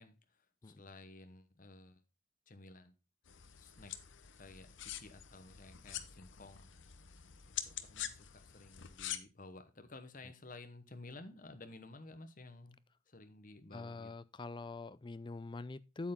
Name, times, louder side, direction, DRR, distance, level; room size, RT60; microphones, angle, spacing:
voice 1, 0.0-2.0 2.5-2.9 3.6-3.9 4.4-6.7 7.0-7.1 7.4-12.8 13.1-14.1, left 2 dB, 40° left, 1.0 m, -54 dB
sound 1, 3.3-9.2, left 11 dB, 65° left, 0.8 m, -46 dB
voice 2, 13.7-16.1, left 3 dB, 25° left, 0.3 m, -44 dB
8.5 x 7.8 x 3.6 m
head